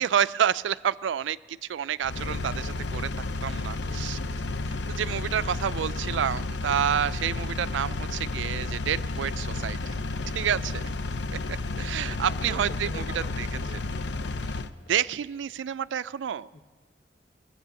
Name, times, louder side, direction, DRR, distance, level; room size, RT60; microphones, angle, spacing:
voice 1, 0.0-3.1 3.4-4.2 5.0-9.9 10.3-10.8 11.8-13.5 13.7-13.8 14.9-16.5, right 9 dB, 85° right, 18 dB, 0.3 m, -29 dB
Engine, 2.0-14.7, left 2 dB, 70° left, 0.6 m, -32 dB
voice 2, 3.8-4.6 12.2-14.0 14.8-14.9 16.5-16.6, left 1 dB, 55° left, 9 dB, 1.0 m, -44 dB
22.5 x 8.7 x 6.9 m, 1.4 s
head